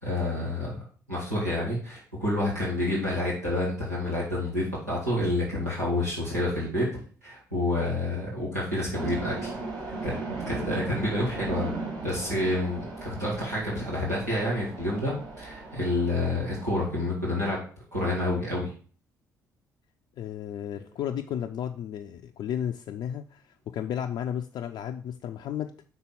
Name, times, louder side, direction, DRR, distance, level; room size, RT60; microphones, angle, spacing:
voice 1, 0.0-6.9 7.2-9.5 10.0-10.1 10.5-11.7 12.0-17.6 17.9-18.7 20.7-20.8, left 1 dB, 90° right, -7 dB, 1.9 m, -28 dB
sound 1, 8.9-16.7, right 3 dB, 55° right, 2.0 m, -37 dB
voice 2, 20.2-25.9, left 9 dB, 55° left, 4 dB, 0.4 m, -33 dB
5.7 x 4.0 x 5.4 m, 0.42 s
figure-of-eight pair, 45°, 9 cm